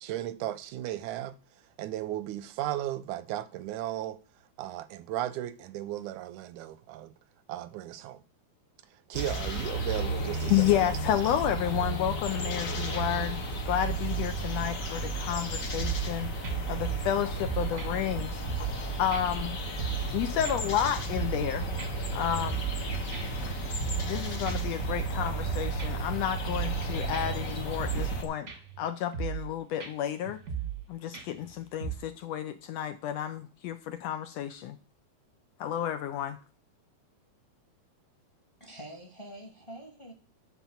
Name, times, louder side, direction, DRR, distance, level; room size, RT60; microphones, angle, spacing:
voice 1, 0.0-1.3 1.8-4.2 4.6-7.1 7.5-8.2 9.1-10.9, right 13 dB, 85° right, 2.1 m, -35 dB
sound 1, 9.1-28.2, right 2 dB, 45° left, 1.0 m, -33 dB
voice 2, 10.5-13.4 13.6-18.4 19.0-19.6 20.1-21.7 22.1-22.7 24.0-28.5 28.8-30.4 30.9-34.8 35.6-36.4, left 11 dB, 75° left, 1.6 m, -31 dB
sound 2, 15.8-16.1 16.4-17.1 17.4-18.8 19.1-19.2 19.6-20.2 20.4-21.5 21.8-21.9 22.2-22.8 23.1-24.2 24.5-26.1 26.5-26.8 27.1-27.2 27.6-28.2 28.5-28.8 29.1-29.5 29.8-29.9 30.3-30.8 31.1-31.5 31.8-32.0, right 8 dB, 40° right, 1.0 m, -36 dB
voice 3, 38.6-40.1, right 1 dB, 15° left, 0.9 m, -45 dB
10.5 x 4.4 x 6.9 m
omnidirectional pair, 3.4 m